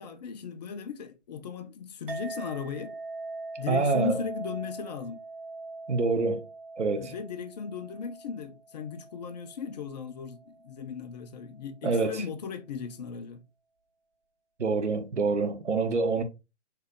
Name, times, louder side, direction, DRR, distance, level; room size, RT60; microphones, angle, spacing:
voice 1, 0.0-3.0 3.6-5.2 7.0-13.4, left 6 dB, 35° left, 0.7 m, -37 dB
Chink clink, 2.1-10.8, right 3 dB, 45° right, 1.8 m, -43 dB
voice 2, 3.7-4.2 5.9-6.4 6.8-7.1 11.8-12.2 14.6-16.2, right 4 dB, 75° right, 1.1 m, -26 dB
4.6 x 3.3 x 3.3 m
figure-of-eight pair, 135°, 36 cm